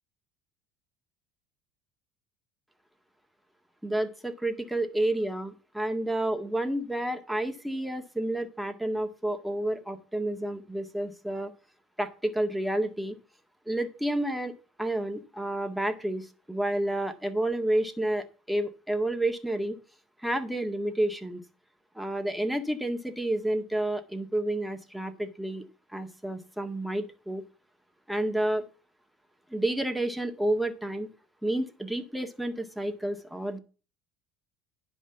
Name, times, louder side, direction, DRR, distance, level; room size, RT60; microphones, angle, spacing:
voice 1, 3.8-11.5 12.0-13.2 13.7-14.5 14.8-19.8 20.2-21.4 22.0-25.7 25.9-27.4 28.1-28.6 29.5-31.1 31.4-33.6, right 1 dB, 5° right, 6 dB, 1.8 m, -30 dB
10.5 x 5.4 x 7.0 m, 0.35 s
hypercardioid pair, 70°, 0 cm